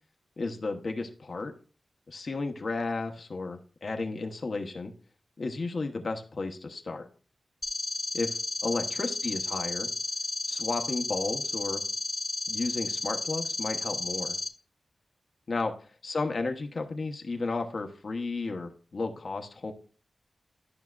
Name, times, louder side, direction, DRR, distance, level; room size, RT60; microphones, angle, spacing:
voice 1, 0.4-1.5 2.1-4.9 5.4-7.1 8.1-9.9 10.5-11.8 12.5-14.4 15.5-15.7 16.0-19.7, left 3 dB, 60° left, 4 dB, 1.0 m, -33 dB
sound 1, 7.6-14.5, left 2 dB, 35° left, 1.0 m, -33 dB
11.5 x 5.6 x 2.4 m, 0.40 s
wide cardioid pair, 75°, 0 cm